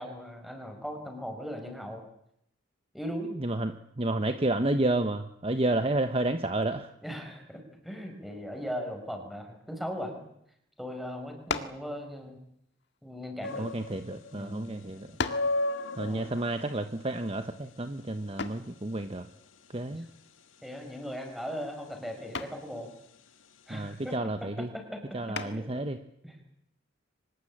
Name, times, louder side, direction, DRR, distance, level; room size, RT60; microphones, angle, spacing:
voice 1, 0.0-2.0 2.9-3.3 7.0-10.2 10.8-12.4 13.0-13.7 14.3-14.7 16.0-16.3 19.9-20.0 20.6-22.9 23.7-25.7 26.2-26.4, equal, ahead, 4 dB, 5.6 m, -39 dB
voice 2, 3.4-6.9 13.6-15.1 16.0-19.3 19.7-20.1 23.7-24.7 25.1-26.0, right 2 dB, 30° right, 8 dB, 1.1 m, -30 dB
sound 1, 11.5-11.9 12.8-14.0 14.6-14.7 15.2-15.6 18.4-18.7 20.6-21.0 21.4-21.7 22.3-22.7 25.3-25.8, left 4 dB, 60° left, 1.9 m, -35 dB
sound 2, 13.4-24.1, left 2 dB, 85° left, 2.1 m, -38 dB
25.0 x 20.0 x 8.8 m, 0.73 s
head